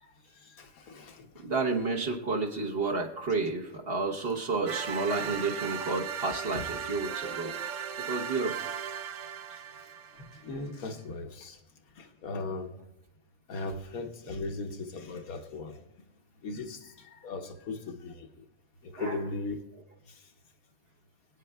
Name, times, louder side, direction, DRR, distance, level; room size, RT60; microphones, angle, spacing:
voice 1, 0.0-1.4 7.5-7.6 9.5-9.6 10.1-11.6 12.0-12.7 13.5-15.8 16.4-18.3 18.8-19.6 20.1-20.2, left 3 dB, 70° left, 1.3 m, -38 dB
voice 2, 1.4-7.5 8.0-8.6 19.0-19.2, right 3 dB, 45° right, 1.2 m, -31 dB
sound 1, 4.7-10.6, right 7 dB, 65° right, 0.8 m, -37 dB
25.5 x 8.9 x 2.3 m
omnidirectional pair, 1.6 m